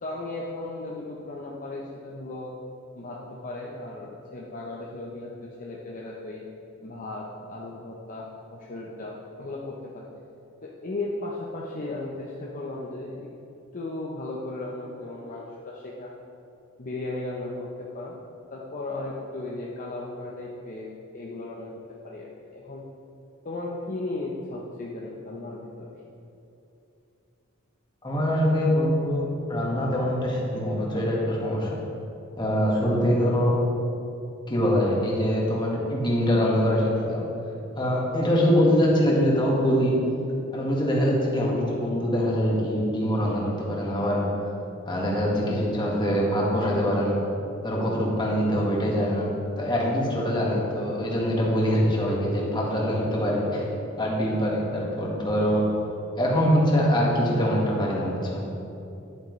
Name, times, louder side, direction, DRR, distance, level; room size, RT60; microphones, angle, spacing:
voice 1, 0.0-2.5 3.0-6.4 6.8-10.1 10.6-13.3 13.7-16.1 16.8-18.1 18.5-20.9 21.1-21.8 22.0-22.8 23.4-25.9, left 2 dB, 40° left, -4 dB, 0.8 m, -36 dB
voice 2, 28.0-31.7 32.4-33.6 34.5-37.3 37.7-40.0 40.5-44.2 44.9-47.2 47.6-49.3 49.6-53.7 54.0-55.6 56.1-58.4, equal, 20° left, -3 dB, 1.6 m, -24 dB
10.5 x 8.9 x 3.2 m, 2.8 s
head